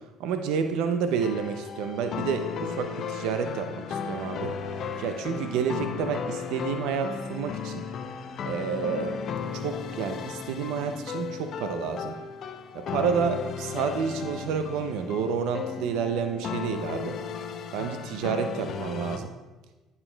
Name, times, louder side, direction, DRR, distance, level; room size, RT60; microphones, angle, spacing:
voice 1, 0.2-4.6 5.0-7.8 8.4-9.2 9.5-12.2 12.7-17.2 17.7-19.4, right 6 dB, 75° right, 7 dB, 0.4 m, -29 dB
sound 1, 1.2-19.2, left 6 dB, 55° left, 0.5 m, -35 dB
12.0 x 4.4 x 2.2 m, 1.2 s
supercardioid pair, 80°, 0 cm